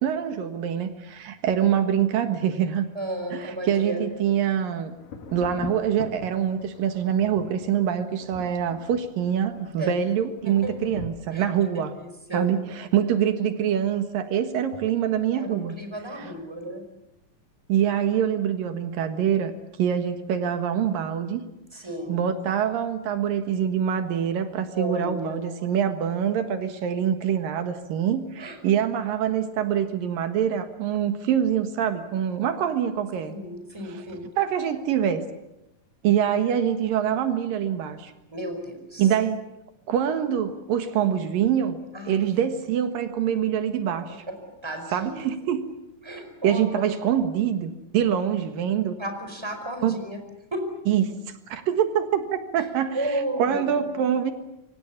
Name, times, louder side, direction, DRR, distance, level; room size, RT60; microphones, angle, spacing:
voice 1, 0.0-2.9 3.3-4.9 5.3-11.9 12.3-15.7 16.2-16.3 17.7-19.5 19.8-21.4 22.1-33.4 33.8-34.0 34.4-35.2 36.0-38.1 39.0-39.4 39.9-41.8 42.1-44.2 44.9-45.7 46.4-49.0 49.8-50.0 50.9-51.0 51.5-52.2 52.5-53.0 53.4-54.3, right 9 dB, 85° right, 8 dB, 3.3 m, -25 dB
voice 2, 2.9-4.1 9.8-10.0 10.4-10.7 11.3-11.5 11.7-12.5 15.4-16.8 21.7-22.2 24.7-25.4 28.4-28.6 33.2-34.3 38.3-39.1 41.9-42.2 44.3-44.4 44.6-45.3 46.0-46.9 49.0-50.2 50.5-50.7 52.6-52.7 52.9-53.7, right 1 dB, 5° right, 5 dB, 4.9 m, -33 dB
Thunder, 5.0-11.1, left 5 dB, 80° left, 3.9 m, -42 dB
27.5 x 24.5 x 7.2 m, 0.87 s
omnidirectional pair, 3.9 m